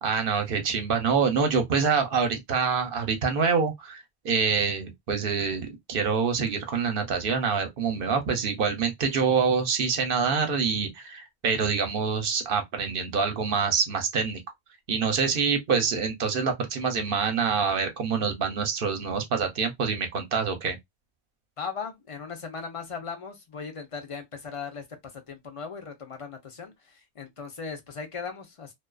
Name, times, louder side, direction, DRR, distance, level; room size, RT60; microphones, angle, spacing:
voice 1, 0.0-14.4 14.9-20.8, right 5 dB, 60° right, 0.8 m, -26 dB
voice 2, 21.6-24.8 25.3-28.7, left 5 dB, 40° left, 0.6 m, -38 dB
2.3 x 2.3 x 2.2 m
omnidirectional pair, 1.1 m